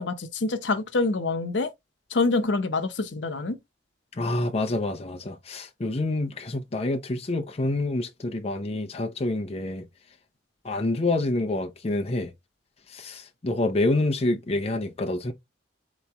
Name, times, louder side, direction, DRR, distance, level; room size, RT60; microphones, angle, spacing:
voice 1, 0.0-1.7 2.1-3.6, left 3 dB, 85° left, 0.8 m, -26 dB
voice 2, 4.2-9.8 10.6-12.3 12.9-15.3, left 2 dB, 35° left, 0.6 m, -27 dB
4.1 x 3.1 x 3.4 m
head